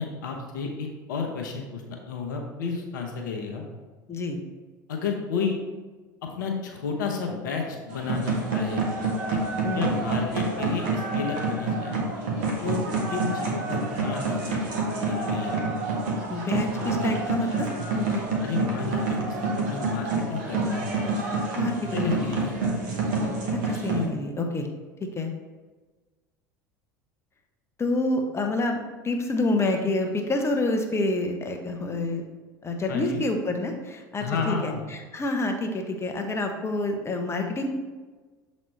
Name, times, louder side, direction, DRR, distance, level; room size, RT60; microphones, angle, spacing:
voice 1, 0.0-3.6 4.9-5.6 6.2-8.9 9.3-9.4 9.7-12.0 12.6-12.8 13.1-14.6 15.1-15.6 18.4-20.9 21.9-22.6 32.9-33.2 34.2-34.9, left 5 dB, 75° left, 2 dB, 0.8 m, -31 dB
sound 1, 7.9-24.0, right 3 dB, 65° right, 1.4 m, -28 dB
voice 2, 16.3-18.3 21.5-22.4 23.5-24.7 25.0-25.3 27.8-32.2 32.6-37.7, left 2 dB, 25° left, 4 dB, 1.0 m, -28 dB
7.2 x 4.2 x 3.2 m, 1.3 s
hypercardioid pair, 75°, 10 cm